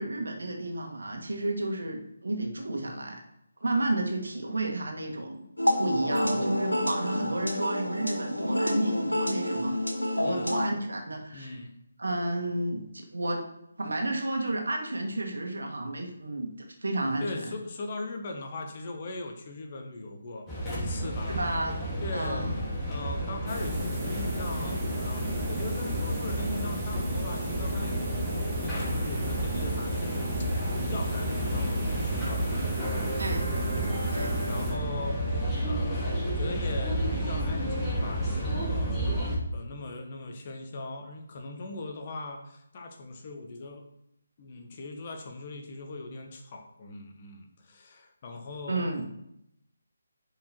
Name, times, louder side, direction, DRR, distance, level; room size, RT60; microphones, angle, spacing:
voice 1, 0.0-3.2 3.6-5.4 5.8-9.7 10.2-11.6 12.0-13.4 13.8-16.5 16.8-17.5 21.3-21.8 22.1-22.6 33.2-33.4 34.1-34.3 48.7-49.0, right 2 dB, 60° right, 2 dB, 2.1 m, -31 dB
sound 1, 5.6-10.7, left 1 dB, 80° left, 1.6 m, -28 dB
voice 2, 10.2-10.5 11.3-11.7 17.2-21.4 22.0-22.5 22.8-28.1 28.6-39.1 39.5-43.8 44.4-48.9, left 2 dB, 35° left, 3 dB, 1.4 m, -40 dB
sound 2, 20.5-39.4, right 1 dB, 10° left, 2.5 m, -31 dB
sound 3, 23.5-35.1, right 1 dB, 10° right, 2.1 m, -36 dB
11.0 x 5.1 x 4.6 m, 0.79 s
figure-of-eight pair, 150°, 0 cm